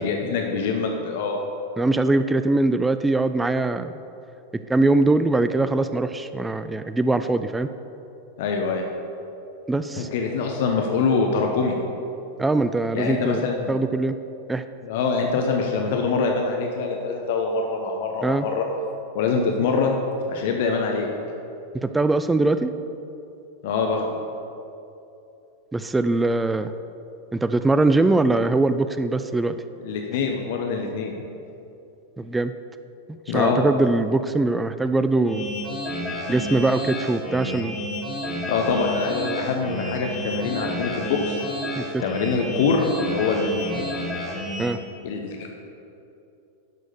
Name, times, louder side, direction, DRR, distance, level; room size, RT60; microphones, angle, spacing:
voice 1, 0.0-1.4 8.4-8.8 10.0-11.8 12.9-13.8 14.8-18.7 19.1-20.0 20.3-21.1 23.6-24.1 29.8-31.1 33.3-33.6 38.5-41.4 42.0-43.7 45.0-45.6, left 4 dB, 50° left, 2 dB, 0.9 m, -24 dB
voice 2, 1.8-4.0 4.7-7.7 9.7-10.1 12.4-13.4 13.7-14.2 14.5-14.6 18.2-18.5 21.7-22.7 25.7-26.7 27.3-29.6 32.2-32.5 33.3-35.5 36.3-37.8 41.8-42.0 44.6-44.8, right 2 dB, 10° right, 11 dB, 0.4 m, -22 dB
sound 1, 35.2-44.7, left 1 dB, 10° left, 1.9 m, -30 dB
10.5 x 6.3 x 6.8 m, 2.8 s
figure-of-eight pair, 90°, 0 cm